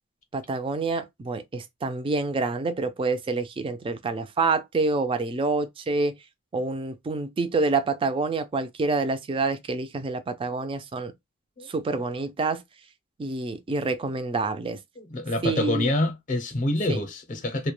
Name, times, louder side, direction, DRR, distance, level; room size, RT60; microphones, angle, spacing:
voice 1, 0.3-6.1 6.5-11.1 11.7-12.6 13.2-14.8 15.4-15.9 16.9-17.0, right 3 dB, 25° right, 0.3 m, -27 dB
voice 2, 15.0-17.7, left 1 dB, 35° left, 0.6 m, -26 dB
2.2 x 2.1 x 2.9 m
head